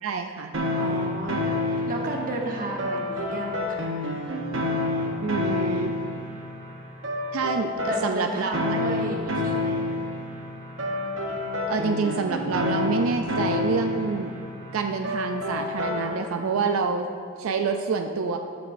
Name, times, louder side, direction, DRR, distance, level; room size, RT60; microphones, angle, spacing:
voice 1, 0.0-0.5 5.2-5.9 7.3-8.8 11.7-14.3 14.7-17.1 17.4-18.4, right 5 dB, 80° right, 6 dB, 0.4 m, -27 dB
sound 1, 0.5-16.5, left 2 dB, 65° right, 0.9 m, -29 dB
voice 2, 0.7-3.9 7.8-10.0, right 1 dB, 40° right, 0 dB, 1.0 m, -33 dB
12.5 x 6.9 x 2.6 m, 2.4 s
head